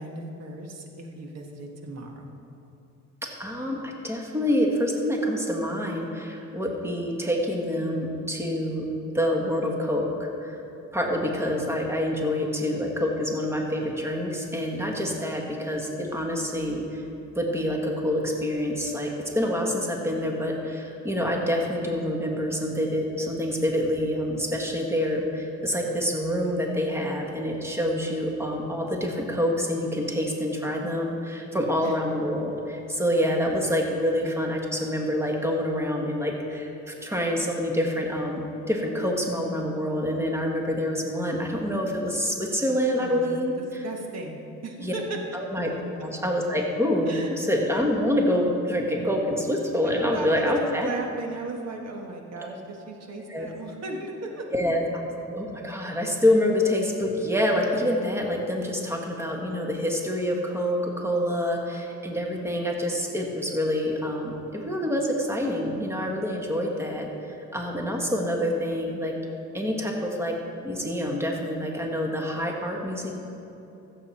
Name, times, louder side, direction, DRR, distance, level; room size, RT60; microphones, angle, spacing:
voice 1, 0.0-2.3 31.8-32.0 34.2-34.3 43.0-43.3 43.8-45.2 45.6-46.0 47.1-47.3 49.8-54.5, right 2 dB, 60° right, 2 dB, 1.6 m, -36 dB
voice 2, 3.4-8.8 9.1-10.1 10.4-10.6 10.9-17.0 17.3-38.4 38.7-43.5 44.8-44.9 45.3-45.7 46.0-50.9 53.3-53.5 54.5-54.8 55.3-67.1 67.5-69.1 69.5-70.3 70.6-73.1, equal, 10° right, 0 dB, 1.6 m, -26 dB
14.5 x 7.5 x 4.3 m, 2.9 s
cardioid pair, 90°, 30 cm